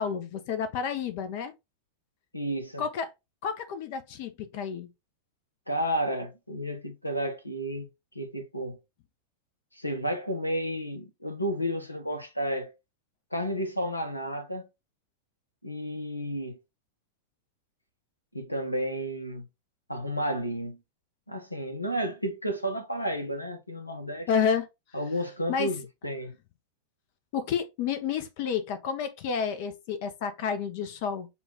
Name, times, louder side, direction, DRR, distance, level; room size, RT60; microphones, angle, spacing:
voice 1, 0.0-1.5 2.8-3.1 3.4-4.9 24.3-24.7 25.5-25.7 27.3-31.3, left 7 dB, 50° left, 0.6 m, -30 dB
voice 2, 2.3-2.9 5.7-7.9 8.1-8.8 9.7-12.7 13.3-14.7 15.6-16.6 18.3-19.5 19.9-20.8 21.3-24.3 24.9-26.3, equal, 85° left, 0.7 m, -32 dB
6.9 x 2.4 x 2.8 m
figure-of-eight pair, 90°, 0 cm